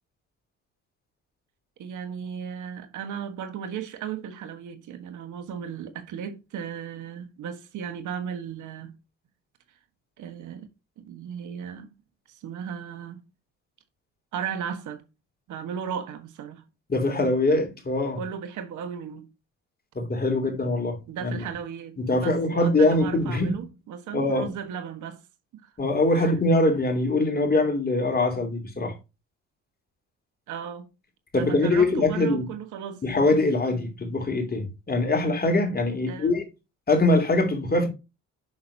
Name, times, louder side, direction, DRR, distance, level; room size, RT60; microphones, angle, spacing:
voice 1, 1.8-8.9 10.2-10.7 11.0-11.9 12.3-13.2 14.3-15.0 15.5-16.6 18.2-19.3 21.1-25.2 25.5-25.7 26.1-26.3 30.5-30.9 31.3-33.0 36.1-36.4, right 8 dB, 80° right, 1.5 m, -35 dB
voice 2, 16.9-18.2 19.9-21.4 22.0-23.6 24.1-24.5 25.8-29.0 31.3-32.5 33.0-36.4 36.9-37.9, left 2 dB, 30° left, 2.9 m, -23 dB
7.2 x 6.5 x 2.9 m
cardioid pair, 90°, 30 cm